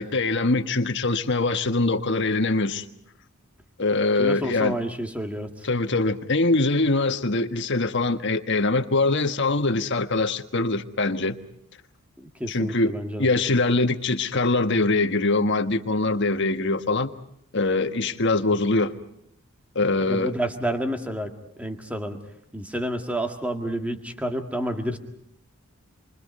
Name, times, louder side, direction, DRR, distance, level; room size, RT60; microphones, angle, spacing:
voice 1, 0.0-2.8 3.8-4.8 5.6-11.4 12.5-12.9 13.2-17.1 17.5-18.9 19.7-20.3, left 2 dB, 55° left, 7 dB, 1.5 m, -23 dB
voice 2, 4.2-5.7 12.2-13.3 20.1-21.3 21.6-22.2 22.5-25.0, right 1 dB, 5° right, 5 dB, 1.9 m, -29 dB
28.5 x 24.5 x 5.5 m, 0.73 s
head